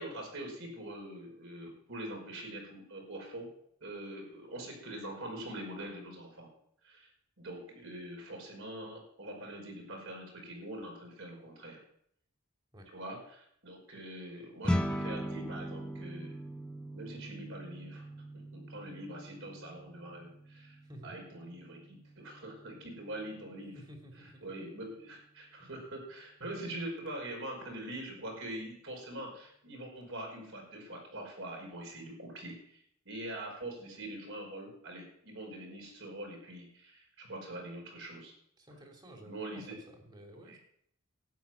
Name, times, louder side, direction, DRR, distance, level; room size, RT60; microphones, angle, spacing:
voice 1, 0.0-3.5 3.8-6.5 6.8-7.1 7.4-11.8 12.9-16.4 16.9-18.1 18.3-23.8 24.1-38.3 39.2-39.8 40.3-40.6, right 1 dB, 60° right, 1 dB, 5.2 m, -44 dB
sound 1, 14.6-24.1, equal, 5° left, 0.8 m, -40 dB
voice 2, 23.8-24.4 25.6-25.7 38.6-40.6, equal, 20° right, 2 dB, 2.6 m, -52 dB
12.0 x 7.9 x 9.4 m, 0.69 s
head